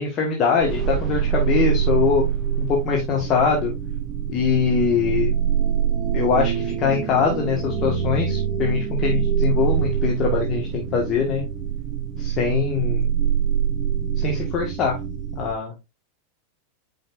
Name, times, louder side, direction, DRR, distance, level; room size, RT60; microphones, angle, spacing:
voice 1, 0.0-2.2 2.6-3.7 4.3-5.4 6.1-11.4 12.2-13.1 14.2-14.9 15.4-15.7, left 6 dB, 30° left, -1 dB, 1.7 m, -22 dB
sound 1, 0.6-15.5, right 8 dB, 25° right, 1.2 m, -24 dB
8.1 x 5.1 x 2.6 m, 0.23 s
figure-of-eight pair, 90°, 0 cm